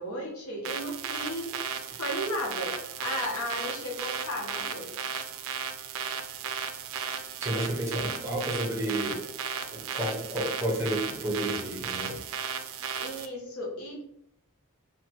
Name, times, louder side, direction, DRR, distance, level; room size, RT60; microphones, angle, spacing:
voice 1, 0.0-1.6 1.9-4.9 7.7-8.1 13.0-14.0, equal, 85° left, 0 dB, 0.8 m, -35 dB
sound 1, 0.6-13.3, right 7 dB, 65° right, 0.3 m, -35 dB
voice 2, 7.4-8.0 8.2-9.2 9.7-12.3, right 1 dB, 15° right, -3 dB, 0.7 m, -31 dB
2.9 x 2.2 x 2.9 m, 0.72 s
head